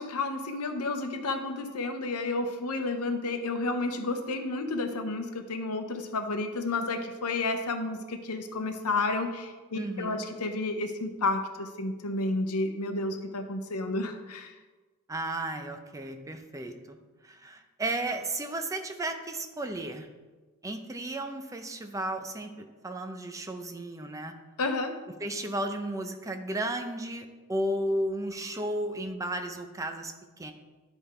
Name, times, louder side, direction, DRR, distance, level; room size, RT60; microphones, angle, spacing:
voice 1, 0.0-14.5 24.6-25.0, left 2 dB, 90° left, 7 dB, 0.8 m, -31 dB
voice 2, 9.7-10.3 15.1-17.0 17.2-20.1 20.6-24.3 25.2-30.5, right 1 dB, 15° right, 6 dB, 0.5 m, -34 dB
10.0 x 3.5 x 4.4 m, 1.3 s
head